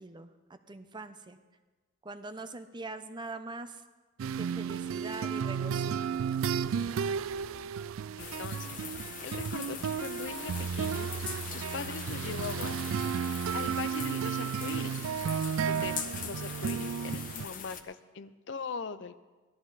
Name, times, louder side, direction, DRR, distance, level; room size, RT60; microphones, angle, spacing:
voice 1, 0.0-1.4 2.0-3.8 4.3-6.3, right 2 dB, 20° right, 9 dB, 0.6 m, -43 dB
sound 1, 4.2-17.5, right 7 dB, 85° right, 0.3 m, -33 dB
voice 2, 8.2-11.1 11.5-12.8 13.1-13.2 13.5-15.0 15.6-16.0 16.2-19.2, left 5 dB, 60° left, 13 dB, 0.6 m, -41 dB
sound 2, 8.2-17.8, left 7 dB, 40° left, 0.9 m, -42 dB
18.0 x 13.0 x 4.1 m, 1.3 s
head